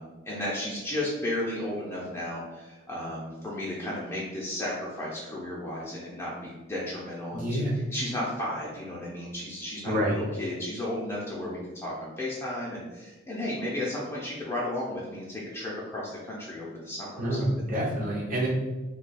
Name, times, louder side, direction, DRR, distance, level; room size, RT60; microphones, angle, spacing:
voice 1, 0.0-17.7, left 1 dB, 15° left, -6 dB, 0.5 m, -34 dB
voice 2, 7.3-7.7 9.8-10.1 17.2-18.5, equal, 40° right, -5 dB, 0.7 m, -27 dB
2.7 x 2.2 x 4.0 m, 1.2 s
head